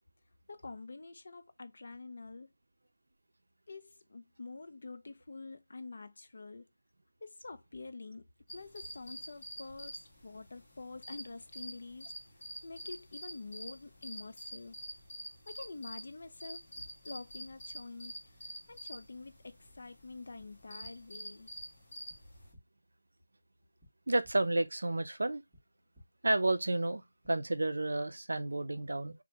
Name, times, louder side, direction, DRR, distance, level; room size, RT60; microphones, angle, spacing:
voice 1, 0.5-2.5 3.7-6.7 7.2-8.3 8.5-12.1 12.6-14.8 15.5-18.4 18.7-21.5, left 3 dB, 40° left, 0.4 m, -47 dB
sound 1, 8.5-22.5, equal, 20° left, 0.9 m, -47 dB
sound 2, 20.4-20.5 20.8-20.9 22.1-22.2 22.5-22.6 23.8-23.9 24.2-24.3 25.5-25.6 25.9-26.0 27.2-27.3, left 1 dB, ahead, 1.1 m, -57 dB
voice 2, 24.1-25.4 26.2-29.1, right 2 dB, 70° right, 0.4 m, -31 dB
2.8 x 2.1 x 3.1 m
figure-of-eight pair, 175°, 0 cm